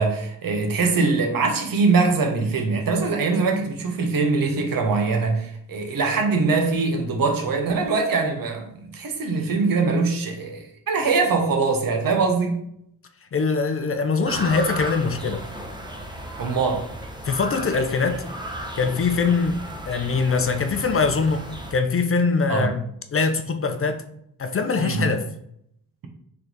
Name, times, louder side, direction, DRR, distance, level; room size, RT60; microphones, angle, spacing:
voice 1, 0.0-12.6 16.4-16.9 22.5-22.7 24.8-25.1, right 4 dB, 65° right, 0.9 m, -22 dB
voice 2, 13.3-15.4 17.2-18.2 18.8-19.6 19.9-21.4 21.7-22.8 23.1-24.0 24.4-25.2, left 4 dB, 40° left, 0.5 m, -22 dB
sound 1, 14.2-21.7, right 1 dB, 10° right, 0.8 m, -35 dB
3.3 x 3.0 x 3.9 m
cardioid pair, 55°, 37 cm